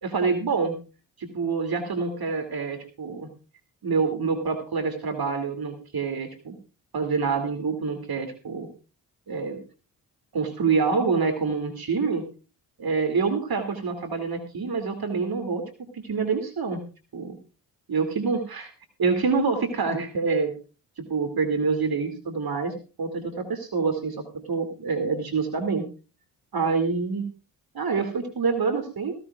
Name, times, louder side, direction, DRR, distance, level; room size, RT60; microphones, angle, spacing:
voice 1, 0.0-0.7 1.2-3.3 3.8-6.6 6.9-8.7 9.3-9.6 10.3-12.2 12.8-15.6 15.9-16.8 17.1-17.4 17.9-18.7 19.0-20.5 21.0-25.8 26.5-27.3 27.7-29.1, right 4 dB, 50° right, 8 dB, 2.6 m, -26 dB
17.0 x 16.0 x 2.4 m, 0.32 s
supercardioid pair, 40°, 45 cm